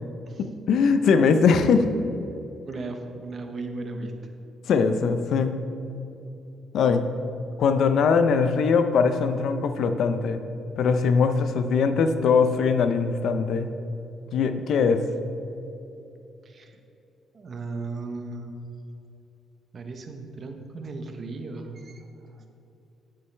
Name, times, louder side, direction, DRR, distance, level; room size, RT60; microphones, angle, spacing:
voice 1, 0.4-1.9 4.7-5.6 6.7-7.0 7.6-10.4 10.8-13.7 14.3-15.0, left 5 dB, 70° left, 9 dB, 0.6 m, -21 dB
voice 2, 2.7-4.3 16.4-16.8 17.3-18.5 19.7-22.5, right 3 dB, 45° right, 5 dB, 1.0 m, -36 dB
9.4 x 8.6 x 3.3 m, 2.9 s
cardioid pair, 90°, 0 cm